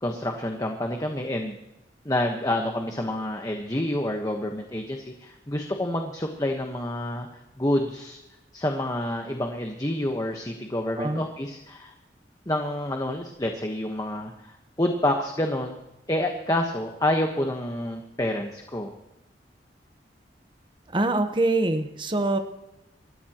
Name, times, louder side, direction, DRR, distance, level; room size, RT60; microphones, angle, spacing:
voice 1, 0.0-1.6 2.0-7.3 7.6-8.2 8.5-11.9 12.5-15.7 16.1-18.9, left 1 dB, 20° left, 3 dB, 1.2 m, -28 dB
voice 2, 20.9-22.4, right 2 dB, 25° right, 6 dB, 1.1 m, -24 dB
27.5 x 14.0 x 3.0 m, 0.92 s
head